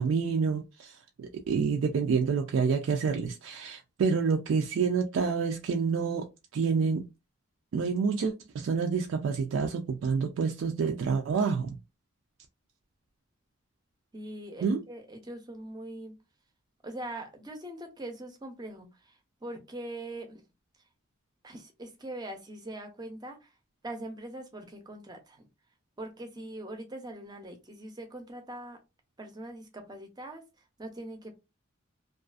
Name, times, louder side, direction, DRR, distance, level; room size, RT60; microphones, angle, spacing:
voice 1, 0.0-6.3 6.5-7.1 7.7-11.8 14.6-14.8, right 5 dB, 65° right, 0.3 m, -28 dB
voice 2, 14.1-16.2 16.8-20.4 21.4-23.5 23.8-25.5 26.0-28.8 29.2-30.4 30.8-31.4, right 1 dB, 20° right, 0.5 m, -42 dB
2.4 x 2.3 x 2.3 m
head